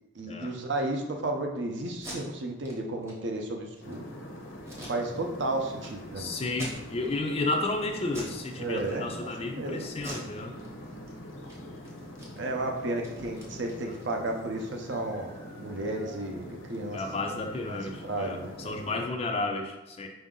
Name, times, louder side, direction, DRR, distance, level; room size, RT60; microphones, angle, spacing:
voice 1, 0.1-4.0 4.9-6.4 8.6-9.3 9.6-9.9 12.4-15.3 15.6-17.0 17.7-17.8 18.0-18.8, right 2 dB, 55° right, 3 dB, 0.5 m, -33 dB
Packing tape duct tape, 1.9-2.2 2.6-2.7 3.0-3.1 3.6-3.9 4.6-5.4 5.8-5.9 6.5-7.2 7.5-7.8 8.1-8.4 8.7-9.3 9.9-11.1 11.4-11.6 11.8-14.5, right 1 dB, 15° right, 0.7 m, -45 dB
sound 1, 3.8-19.1, equal, 65° left, 0.6 m, -44 dB
voice 2, 6.2-10.5 16.9-20.1, left 2 dB, 30° left, 4 dB, 0.3 m, -32 dB
4.7 x 2.6 x 3.7 m, 1.0 s
head